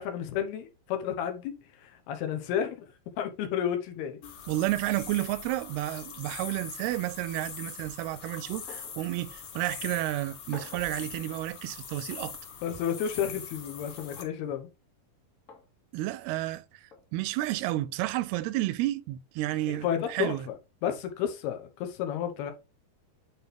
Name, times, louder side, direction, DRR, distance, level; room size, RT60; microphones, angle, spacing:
voice 1, 0.0-1.6 1.8-2.9 3.2-4.2 12.6-14.7 19.8-20.5 20.8-22.5, left 9 dB, 80° left, 3.1 m, -31 dB
sound 1, 4.2-14.2, left 7 dB, 55° left, 2.6 m, -43 dB
voice 2, 4.5-12.4 15.9-20.5, right 16 dB, 90° right, 2.5 m, -31 dB
sound 2, 8.7-9.0 9.4-9.5 10.5-11.0 12.1-12.3 14.0-14.3 15.5-15.7 16.9-17.1, left 4 dB, 30° left, 1.6 m, -48 dB
9.7 x 4.5 x 3.4 m
omnidirectional pair, 4.5 m